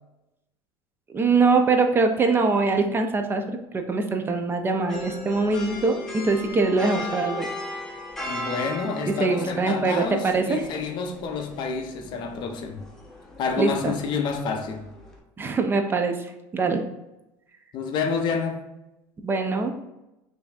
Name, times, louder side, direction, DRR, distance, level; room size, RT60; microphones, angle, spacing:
voice 1, 1.1-7.5 9.2-10.7 13.6-14.0 15.4-16.8 19.2-19.8, right 4 dB, 20° right, 0.4 m, -23 dB
sound 1, 4.9-15.2, left 2 dB, 5° left, 0.8 m, -37 dB
voice 2, 8.3-12.8 13.4-14.9 17.7-18.6, left 5 dB, 50° left, 0.6 m, -28 dB
5.6 x 2.6 x 2.3 m
supercardioid pair, 120°, 10 cm